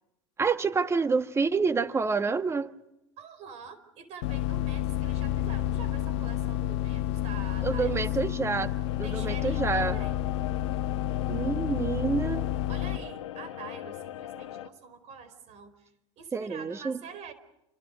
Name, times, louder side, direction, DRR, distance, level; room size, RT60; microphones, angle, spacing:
voice 1, 0.4-2.7 7.6-8.7 9.0-10.0 11.3-12.5 16.3-17.0, right 4 dB, 15° right, 10 dB, 1.6 m, -28 dB
voice 2, 3.2-8.0 9.0-10.2 12.7-15.9 16.2-17.3, right 6 dB, 45° right, 12 dB, 4.5 m, -46 dB
sound 1, 4.2-13.0, left 12 dB, 65° left, 1.1 m, -30 dB
sound 2, 8.9-14.7, left 12 dB, 85° left, 1.4 m, -40 dB
29.5 x 25.0 x 5.3 m, 0.89 s
hypercardioid pair, 105°, 15 cm